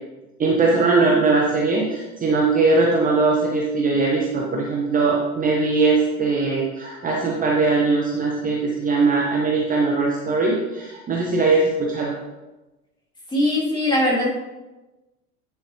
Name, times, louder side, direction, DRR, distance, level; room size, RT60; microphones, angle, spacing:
voice 1, 0.4-12.1, right 3 dB, 20° right, -2 dB, 1.1 m, -20 dB
voice 2, 13.3-14.3, left 1 dB, 10° left, -6 dB, 2.8 m, -20 dB
9.5 x 6.9 x 3.0 m, 1.1 s
figure-of-eight pair, 80°, 43 cm